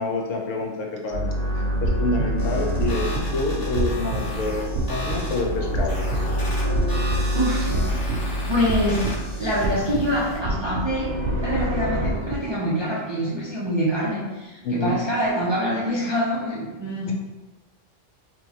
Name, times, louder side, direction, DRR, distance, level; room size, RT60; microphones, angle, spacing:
voice 1, 0.0-1.3 1.8-6.0 14.6-15.0, left 2 dB, 85° left, 1 dB, 1.0 m, -27 dB
sound 1, 1.1-12.0, equal, 50° left, 1.3 m, -27 dB
sound 2, 1.7-12.5, right 1 dB, 65° right, 0.8 m, -30 dB
sound 3, 2.4-10.4, left 1 dB, 25° left, 0.5 m, -34 dB
voice 2, 7.3-8.2 8.5-9.0 9.4-17.1, equal, 40° right, -7 dB, 0.3 m, -25 dB
4.3 x 2.1 x 2.7 m, 1.1 s
omnidirectional pair, 1.3 m